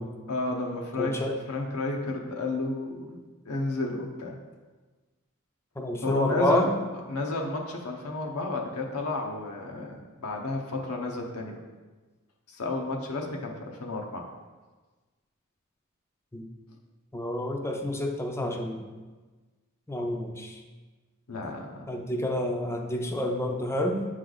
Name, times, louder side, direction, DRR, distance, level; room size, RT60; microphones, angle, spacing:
voice 1, 0.3-1.2 1.4-3.2 3.4-4.4 6.0-6.7 7.1-11.6 12.5-14.2 21.3-21.9, left 2 dB, 75° left, 1 dB, 0.8 m, -32 dB
voice 2, 1.0-1.4 5.8-6.7 16.3-16.4 17.1-18.9 19.9-20.6 21.9-24.1, left 1 dB, 10° left, 3 dB, 0.5 m, -29 dB
8.7 x 3.2 x 3.9 m, 1.3 s
head